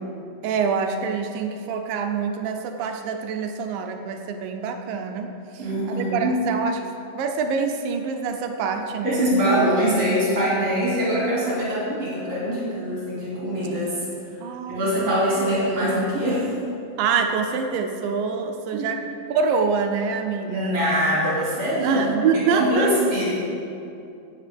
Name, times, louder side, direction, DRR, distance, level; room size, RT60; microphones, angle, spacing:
voice 1, 0.4-6.8 7.2-9.2 14.4-15.1 17.0-19.0 19.3-20.8 21.8-22.9, right 5 dB, 80° right, 4 dB, 2.3 m, -25 dB
voice 2, 5.6-6.3 9.0-13.9 14.7-16.4 18.7-18.9 20.5-22.1 22.5-23.3, equal, 45° right, -8 dB, 3.4 m, -23 dB
14.0 x 9.1 x 3.5 m, 2.7 s
omnidirectional pair, 4.0 m